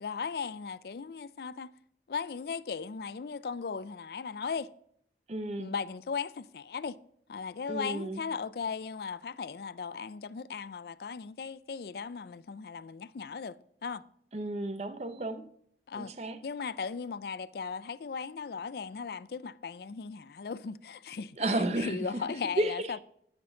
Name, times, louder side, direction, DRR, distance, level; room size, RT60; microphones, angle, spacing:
voice 1, 0.0-1.7 2.1-4.7 5.6-7.0 7.3-14.0 15.9-16.1 16.4-23.0, left 5 dB, 60° left, 0.4 m, -37 dB
voice 2, 5.3-5.7 7.7-8.2 14.3-15.5 15.9-16.4 21.4-22.0 22.6-22.9, right 1 dB, 40° right, 0.7 m, -32 dB
10.0 x 6.0 x 5.7 m
head